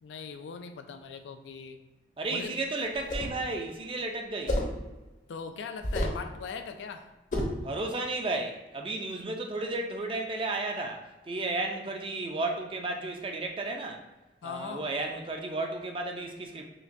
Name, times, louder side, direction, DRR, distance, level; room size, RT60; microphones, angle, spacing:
voice 1, 0.0-1.8 2.3-2.6 5.3-7.1 14.4-14.9, left 5 dB, 80° left, 7 dB, 0.3 m, -40 dB
voice 2, 2.2-4.6 7.5-14.0 14.4-16.7, right 2 dB, 30° right, 3 dB, 0.4 m, -33 dB
sound 1, 2.9-3.4 4.5-4.8 5.8-6.3 7.3-7.6, left 1 dB, 45° left, 0.7 m, -30 dB
5.6 x 2.2 x 2.6 m, 1.1 s
head